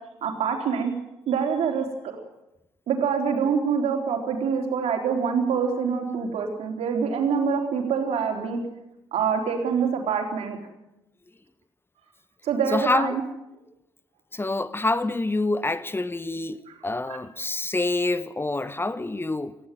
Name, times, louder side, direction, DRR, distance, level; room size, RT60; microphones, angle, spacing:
voice 1, 0.2-0.9 1.3-1.9 2.9-8.6 9.1-10.6 12.4-13.2 16.7-16.8, right 6 dB, 70° right, 3.9 m, -25 dB
voice 2, 12.7-13.2 14.3-19.6, left 2 dB, 20° left, 1.1 m, -27 dB
19.0 x 15.5 x 9.3 m
supercardioid pair, 50°, 11 cm